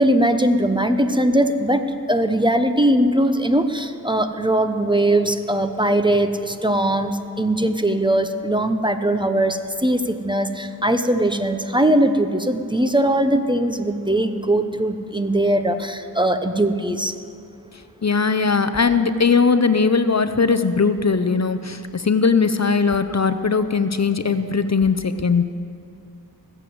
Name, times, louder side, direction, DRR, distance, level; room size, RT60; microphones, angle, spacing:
voice 1, 0.0-1.8 2.1-17.2, right 1 dB, 10° right, 8 dB, 0.8 m, -20 dB
voice 2, 18.0-25.4, left 5 dB, 45° left, 10 dB, 0.6 m, -19 dB
19.5 x 7.7 x 7.8 m, 2.5 s
wide cardioid pair, 50°, 38 cm